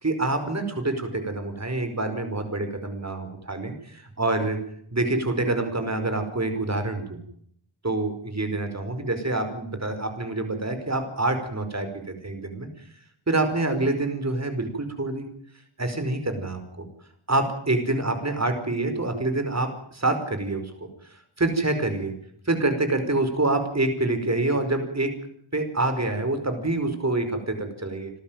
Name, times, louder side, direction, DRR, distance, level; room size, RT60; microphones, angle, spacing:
voice 1, 0.0-4.6 4.9-7.2 7.8-12.7 13.3-15.3 15.8-16.9 17.3-20.7 21.1-22.1 22.5-25.1 25.5-28.1, right 2 dB, 30° right, 7 dB, 5.0 m, -26 dB
28.5 x 13.0 x 9.3 m, 0.66 s
wide cardioid pair, 95°, 49 cm